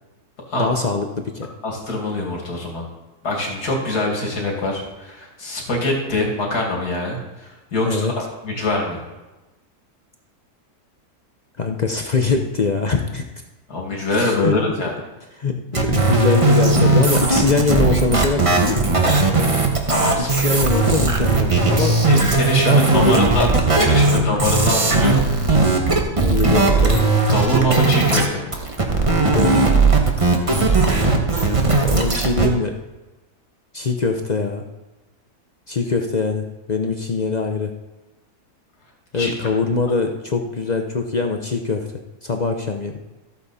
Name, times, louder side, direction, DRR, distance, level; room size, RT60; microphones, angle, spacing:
voice 1, 0.6-1.5 7.9-8.1 11.6-13.2 14.1-14.6 15.4-15.6 15.8-18.8 20.2-22.0 22.6-23.2 23.9-24.4 26.2-27.0 29.3-29.8 31.8-32.7 33.7-34.6 35.7-37.7 39.1-41.9 42.2-43.0, left 4 dB, 40° left, 4 dB, 0.6 m, -22 dB
voice 2, 1.6-2.8 3.2-8.1 8.4-9.0 13.7-14.9 19.9-20.6 22.1-25.2 27.3-28.6 39.1-39.3, left 1 dB, 80° left, 0 dB, 2.9 m, -23 dB
sound 1, 15.7-28.3 28.5-32.5, right 3 dB, 25° right, 1.1 m, -17 dB
14.0 x 8.3 x 4.2 m, 1.1 s
omnidirectional pair, 1.7 m